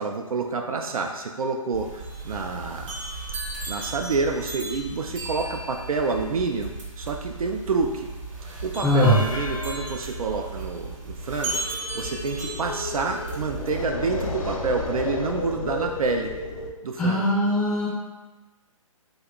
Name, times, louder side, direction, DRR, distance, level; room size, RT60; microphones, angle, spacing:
voice 1, 0.0-3.0 3.7-8.1 8.6-16.3 16.8-17.3, right 4 dB, 85° right, 3 dB, 0.4 m, -28 dB
sound 1, 1.7-13.8, right 2 dB, 65° right, 0.9 m, -35 dB
voice 2, 8.8-9.1 17.0-17.9, left 1 dB, 5° left, -10 dB, 0.3 m, -21 dB
sound 2, 9.0-10.2 11.4-16.7, left 2 dB, 70° left, 0.5 m, -33 dB
2.8 x 2.2 x 3.6 m, 1.2 s
hypercardioid pair, 140°, 18 cm